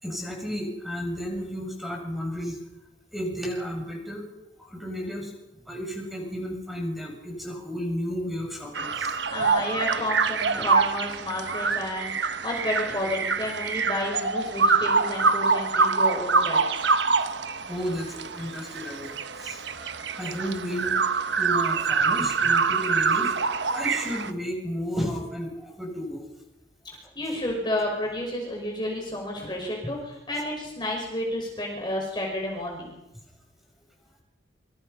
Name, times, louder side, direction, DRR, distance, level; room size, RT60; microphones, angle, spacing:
voice 1, 0.0-2.6 3.1-4.3 4.6-5.3 5.7-9.5 17.2-17.3 17.7-21.1 21.4-26.4, equal, ahead, 0 dB, 7.3 m, -33 dB
sound 1, 8.7-24.3, right 4 dB, 60° right, 1.3 m, -25 dB
voice 2, 9.3-16.6 27.2-32.9, left 1 dB, 20° left, 0 dB, 5.5 m, -31 dB
27.5 x 26.0 x 5.7 m, 0.94 s
head